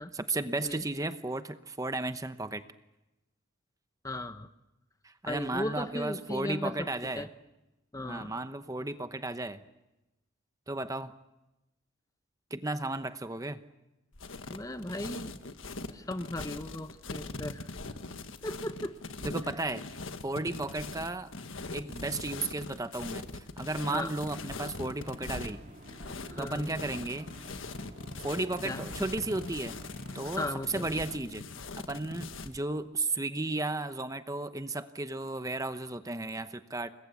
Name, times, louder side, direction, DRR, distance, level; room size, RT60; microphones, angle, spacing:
voice 1, 0.1-2.6 5.0-7.3 8.0-9.6 10.7-11.1 12.5-13.6 19.2-19.8 20.2-21.3 21.7-25.6 26.4-27.3 28.2-29.8 30.1-31.4 31.8-36.9, right 2 dB, 15° right, 10 dB, 0.9 m, -34 dB
voice 2, 4.0-4.5 5.3-6.9 7.2-7.3 7.9-8.4 14.5-15.3 15.9-17.7 18.4-19.0 23.9-24.1 26.3-26.7 28.6-28.8 30.3-30.9, left 1 dB, 15° left, 10 dB, 0.9 m, -36 dB
sound 1, 14.1-32.6, left 3 dB, 80° left, 1.5 m, -41 dB
sound 2, 25.0-31.1, right 1 dB, 40° right, 4.1 m, -50 dB
29.5 x 21.5 x 8.5 m, 0.98 s
head